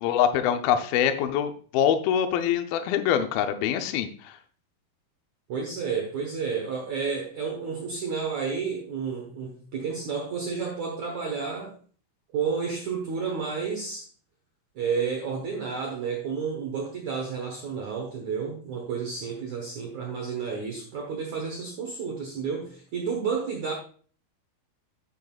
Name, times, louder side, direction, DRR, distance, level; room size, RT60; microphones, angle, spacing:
voice 1, 0.0-4.3, left 9 dB, 85° left, 7 dB, 2.1 m, -24 dB
voice 2, 5.5-11.8 12.3-14.1 14.8-23.7, right 5 dB, 70° right, 1 dB, 1.8 m, -31 dB
9.5 x 9.2 x 2.4 m, 0.43 s
omnidirectional pair, 5.2 m